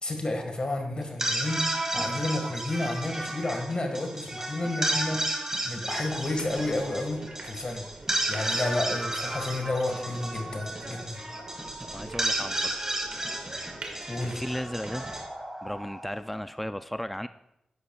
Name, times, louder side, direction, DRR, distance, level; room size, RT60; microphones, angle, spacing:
voice 1, 0.0-5.2 5.6-7.9 8.3-11.2 14.1-14.4, left 2 dB, 45° left, 4 dB, 1.7 m, -31 dB
sound 1, 1.0-16.3, right 1 dB, 20° right, 1.7 m, -33 dB
sound 2, 5.9-15.2, right 2 dB, 60° right, 1.8 m, -44 dB
voice 2, 11.8-12.7 14.2-15.1 15.6-17.3, equal, 5° left, 11 dB, 0.4 m, -35 dB
11.5 x 8.2 x 2.4 m, 0.83 s
cardioid pair, 60°, 2 cm